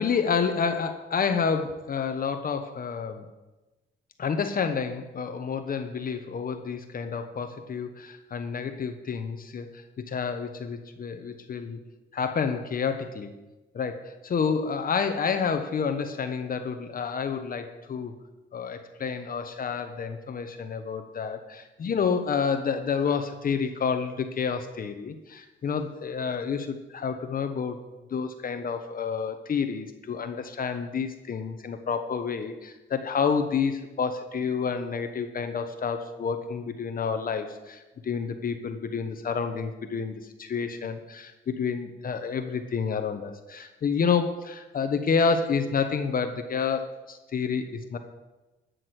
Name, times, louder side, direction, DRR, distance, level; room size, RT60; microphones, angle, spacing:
voice 1, 0.0-3.3 4.2-11.8 12.1-13.3 13.7-18.1 18.5-27.8 28.1-48.0, left 6 dB, 45° left, 7 dB, 1.1 m, -29 dB
12.5 x 6.5 x 8.0 m, 1.1 s
cardioid pair, 90°, 20 cm